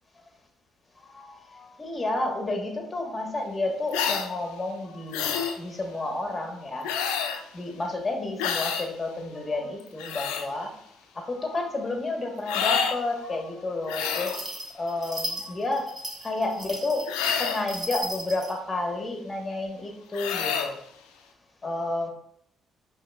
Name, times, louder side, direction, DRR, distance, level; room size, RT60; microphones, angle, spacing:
voice 1, 1.0-10.7 11.1-14.5 14.7-15.9 16.2-20.8 21.6-22.1, left 2 dB, 30° left, 3 dB, 1.1 m, -31 dB
sound 1, 3.9-4.3 5.1-5.6 6.8-7.4 8.4-8.9 9.8-10.5 12.5-13.0 13.9-14.4 17.1-17.7 20.1-20.7, left 7 dB, 90° left, 0.3 m, -28 dB
sound 2, 14.1-18.5, right 1 dB, 50° right, 1.2 m, -36 dB
5.5 x 2.9 x 2.2 m, 0.68 s
supercardioid pair, 65°, 0 cm